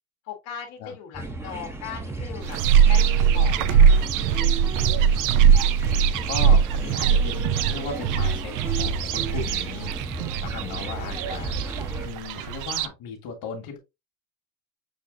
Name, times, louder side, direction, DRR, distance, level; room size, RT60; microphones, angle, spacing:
voice 1, 0.2-4.5 4.9-5.3 10.9-11.7, left 8 dB, 85° left, 1.6 m, -40 dB
sound 1, 1.1-12.1, right 2 dB, 5° right, 0.7 m, -34 dB
sound 2, 2.4-12.9, right 7 dB, 55° right, 0.5 m, -21 dB
voice 2, 4.7-5.6 6.2-9.9 10.4-11.6 12.0-13.8, left 6 dB, 65° left, 1.8 m, -37 dB
6.6 x 2.8 x 2.6 m
cardioid pair, 145°, 38 cm